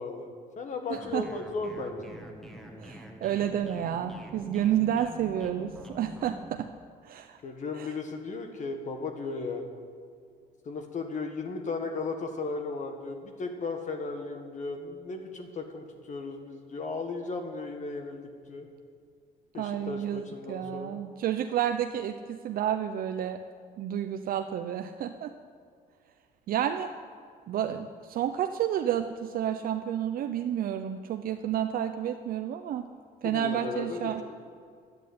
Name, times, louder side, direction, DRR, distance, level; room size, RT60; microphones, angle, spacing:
voice 1, 0.0-2.1 7.4-9.7 10.6-18.2 18.5-18.7 19.5-21.0 33.2-34.1, left 3 dB, 45° left, 5 dB, 1.6 m, -35 dB
sound 1, 0.9-6.6, equal, ahead, 1.7 m, -46 dB
voice 2, 0.9-1.3 2.8-6.7 7.0-7.4 7.7-7.9 19.5-23.4 23.8-25.3 26.5-26.9 27.5-32.9 33.2-34.2, right 10 dB, 60° right, 6 dB, 0.7 m, -30 dB
11.0 x 9.3 x 9.5 m, 2.2 s
cardioid pair, 110°, 17 cm